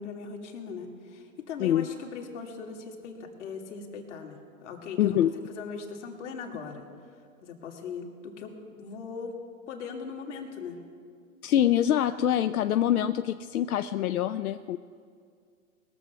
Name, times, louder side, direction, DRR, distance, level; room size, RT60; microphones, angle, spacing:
voice 1, 0.0-5.2 5.5-6.9 7.4-9.4 9.7-10.8, left 5 dB, 55° left, 2 dB, 2.2 m, -39 dB
voice 2, 1.6-1.9 5.0-5.3 11.4-14.8, left 11 dB, 85° left, 11 dB, 0.5 m, -25 dB
20.5 x 7.1 x 5.8 m, 2.2 s
hypercardioid pair, 130°, 42 cm